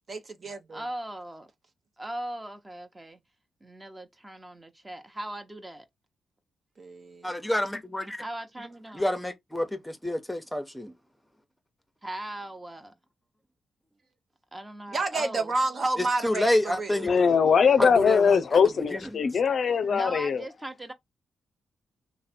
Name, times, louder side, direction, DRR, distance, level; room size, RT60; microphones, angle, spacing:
voice 1, 0.1-0.8 6.8-7.3 14.9-17.0, right 3 dB, 45° right, 0.8 m, -30 dB
voice 2, 0.7-1.5 2.0-3.2 3.6-5.9 8.2-9.2 12.0-12.9 14.5-15.5 19.9-20.9, right 1 dB, 15° right, 0.9 m, -39 dB
voice 3, 7.2-8.2 8.9-10.9 16.0-17.1 17.8-18.6 18.9-19.0, left 1 dB, 5° left, 0.9 m, -28 dB
voice 4, 17.0-20.4, left 6 dB, 60° left, 0.5 m, -21 dB
3.2 x 2.2 x 4.2 m
cardioid pair, 80°, 0 cm